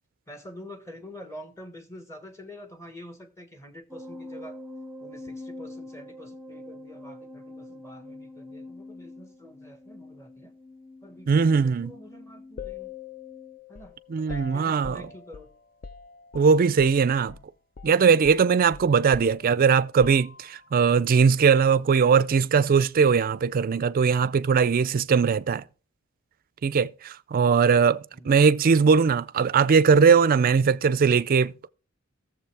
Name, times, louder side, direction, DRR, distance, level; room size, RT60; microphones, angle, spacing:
voice 1, 0.3-4.6 5.0-10.5 11.0-12.9 13.7-15.5 28.1-28.4, left 1 dB, 15° left, 1.3 m, -46 dB
sound 1, 3.9-13.6, left 1 dB, 5° right, 0.7 m, -44 dB
voice 2, 11.3-11.9 14.1-15.1 16.3-17.3 17.8-25.6 26.6-31.7, right 6 dB, 45° right, 0.4 m, -20 dB
sound 2, 12.6-17.0 17.3-17.5 17.8-20.7, left 5 dB, 40° left, 0.5 m, -43 dB
15.5 x 7.1 x 3.4 m
head